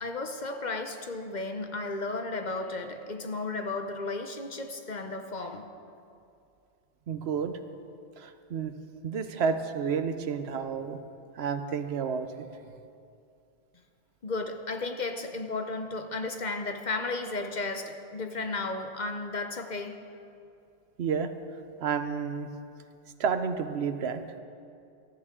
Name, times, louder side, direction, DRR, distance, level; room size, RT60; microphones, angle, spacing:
voice 1, 0.0-5.8 14.2-20.0, left 3 dB, 45° left, 6 dB, 0.8 m, -34 dB
voice 2, 7.1-7.6 8.2-8.7 9.0-11.0 11.3-12.6 21.0-21.3 21.8-22.5 23.2-24.2, right 6 dB, 70° right, 9 dB, 1.0 m, -30 dB
16.0 x 13.5 x 3.7 m, 2.5 s
omnidirectional pair, 1.1 m